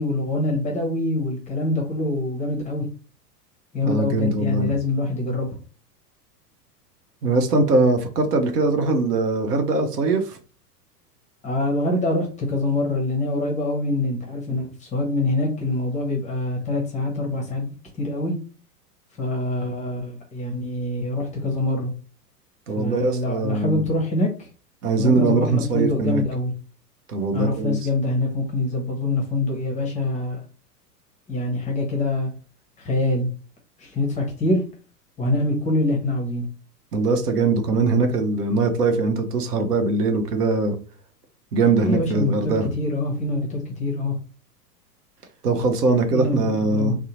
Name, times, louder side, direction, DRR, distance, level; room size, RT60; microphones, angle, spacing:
voice 1, 0.0-2.8 3.7-5.5 11.4-17.7 18.0-18.3 19.2-21.9 22.8-24.5 25.0-26.5 27.3-30.4 31.3-32.3 32.8-33.3 33.8-34.6 35.2-36.5 41.8-44.1 46.1-46.4 46.7-46.9, left 2 dB, 15° left, 0 dB, 0.6 m, -24 dB
voice 2, 3.8-4.7 7.2-10.4 22.7-23.9 24.8-26.2 27.1-27.8 36.9-40.8 41.5-42.7 45.4-47.0, right 3 dB, 70° right, 5 dB, 0.8 m, -21 dB
2.7 x 2.0 x 2.9 m, 0.37 s
figure-of-eight pair, 95°, 48 cm